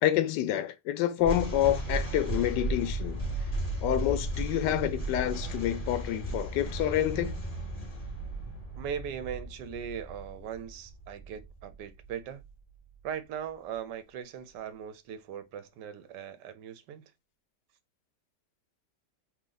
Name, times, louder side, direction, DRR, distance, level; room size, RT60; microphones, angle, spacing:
voice 1, 0.0-3.2 3.8-7.3, left 12 dB, 85° left, 1.2 m, -28 dB
sound 1, 1.2-12.5, right 1 dB, 15° left, 2.5 m, -35 dB
voice 2, 8.8-12.4 13.0-17.0, right 8 dB, 80° right, 1.4 m, -39 dB
4.3 x 3.0 x 3.9 m
omnidirectional pair, 1.8 m